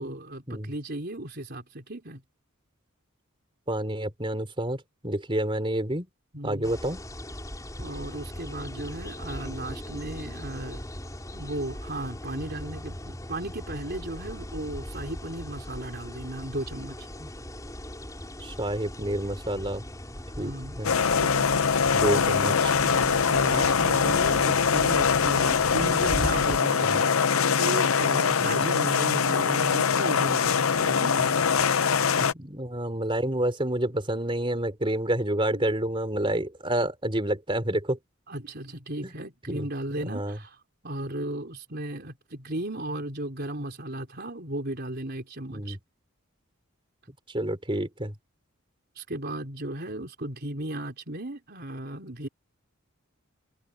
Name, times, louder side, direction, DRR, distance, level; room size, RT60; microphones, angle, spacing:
voice 1, 0.0-2.2 6.3-6.7 7.8-10.9 11.3-17.1 20.4-20.8 21.1-22.3 22.8-31.4 35.5-35.6 38.3-45.8 49.0-52.3, right 1 dB, 50° right, 4.3 m, -35 dB
voice 2, 3.7-6.1 6.4-7.0 17.2-17.3 18.4-19.8 20.4-20.9 21.9-22.7 26.8-27.0 28.4-28.5 32.2-38.0 39.0-39.1 39.5-39.7 40.1-40.4 45.5-45.8 47.3-48.1, right 1 dB, 25° right, 3.9 m, -29 dB
sound 1, 6.6-26.6, equal, 15° left, 4.8 m, -39 dB
sound 2, 20.8-32.3, left 6 dB, 75° left, 0.8 m, -23 dB
head